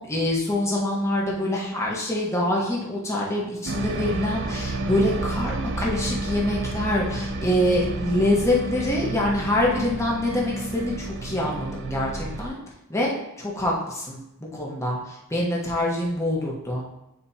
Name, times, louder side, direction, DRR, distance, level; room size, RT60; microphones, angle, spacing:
voice 1, 0.1-12.6 12.9-13.1 13.4-14.2 14.5-16.8, left 1 dB, 15° left, -4 dB, 1.2 m, -25 dB
sound 1, 3.7-12.5, right 2 dB, 55° right, 0.5 m, -30 dB
9.0 x 4.2 x 2.9 m, 0.89 s
head